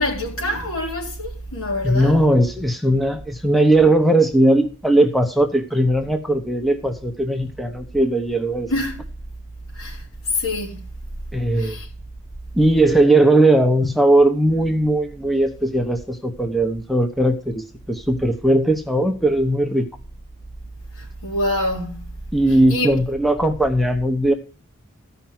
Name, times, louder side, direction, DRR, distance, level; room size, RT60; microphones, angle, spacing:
voice 1, 0.0-2.2 8.7-9.0 9.7-10.8 11.5-11.9 20.9-22.2 22.7-23.0, left 1 dB, 75° left, 3.9 m, -26 dB
voice 2, 1.8-8.7 11.3-11.8 12.5-19.9 22.3-24.3, right 1 dB, ahead, 1.0 m, -18 dB
14.5 x 5.7 x 7.5 m
head